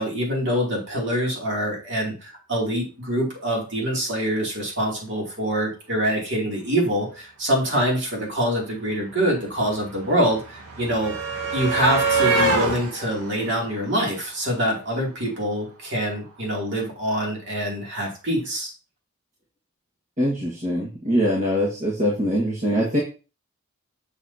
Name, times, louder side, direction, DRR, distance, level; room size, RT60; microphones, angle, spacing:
voice 1, 0.0-11.2 11.5-18.7, equal, 55° right, -2 dB, 2.7 m, -25 dB
sound 1, 8.2-8.3 8.5-14.7 15.9-16.0 16.3-16.4, right 3 dB, 85° right, 1.5 m, -26 dB
voice 2, 20.2-23.0, equal, 35° right, -4 dB, 1.5 m, -23 dB
6.9 x 6.4 x 2.8 m, 0.33 s
head